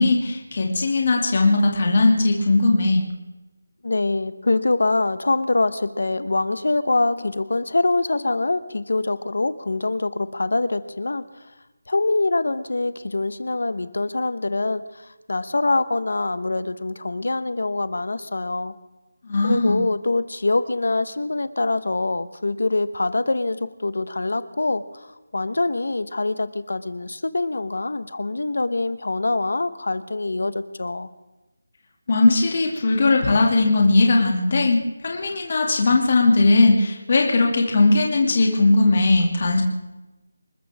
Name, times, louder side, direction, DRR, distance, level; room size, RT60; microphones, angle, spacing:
voice 1, 0.0-3.0 19.3-19.8 32.1-39.6, left 2 dB, 35° left, 1 dB, 2.5 m, -18 dB
voice 2, 3.8-11.2 11.9-14.8 15.3-18.7 19.4-24.8 25.3-31.1, left 2 dB, 65° left, 13 dB, 1.2 m, -24 dB
27.5 x 14.0 x 3.6 m, 1.1 s
figure-of-eight pair, 175°, 0 cm